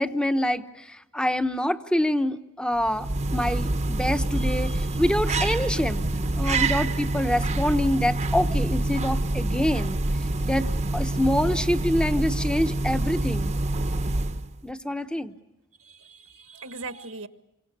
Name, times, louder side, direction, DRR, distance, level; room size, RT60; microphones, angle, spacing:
voice 1, 0.0-3.1 3.3-6.0 6.4-10.0 10.4-13.6 14.6-15.3, left 1 dB, 5° left, 9 dB, 1.0 m, -26 dB
sound 1, 2.8-14.6, right 2 dB, 35° right, 0.9 m, -26 dB
voice 2, 15.8-17.3, right 3 dB, 80° right, 9 dB, 1.6 m, -39 dB
28.0 x 25.0 x 6.8 m, 0.93 s
head